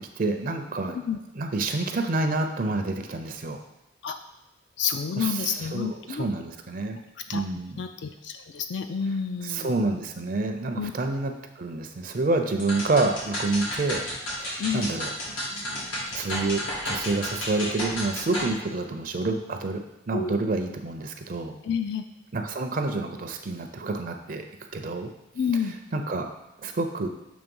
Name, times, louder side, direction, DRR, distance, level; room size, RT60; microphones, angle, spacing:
voice 1, 0.2-1.0 1.4-3.6 5.2-7.0 7.3-7.8 9.4-14.0 14.3-21.5 22.3-24.5 24.7-25.1 25.9-26.3 26.6-27.1, right 3 dB, 45° right, 5 dB, 0.5 m, -28 dB
voice 2, 4.8-6.2 7.3-7.5 7.8-9.8 10.8-10.9 14.6-14.9 20.1-20.4 21.6-22.0 25.4-25.8, left 6 dB, 60° left, 7 dB, 0.4 m, -29 dB
sound 1, 12.6-18.5, left 1 dB, 85° left, 2.4 m, -32 dB
7.0 x 3.1 x 5.3 m, 0.96 s
head